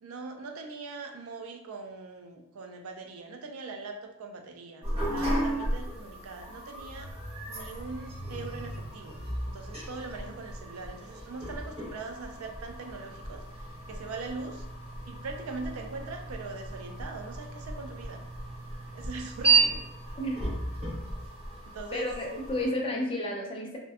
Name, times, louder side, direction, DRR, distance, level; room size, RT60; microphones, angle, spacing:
voice 1, 0.0-7.1 7.5-9.2 9.5-13.4 13.9-14.6 15.1-18.2 18.9-19.8 21.7-22.1, right 4 dB, 80° right, 4 dB, 0.4 m, -41 dB
sound 1, 4.8-22.7, right 3 dB, 25° right, 0.8 m, -33 dB
voice 2, 20.2-20.5 21.9-23.8, left 1 dB, 25° left, 0 dB, 0.3 m, -31 dB
2.6 x 2.1 x 2.3 m, 0.80 s
head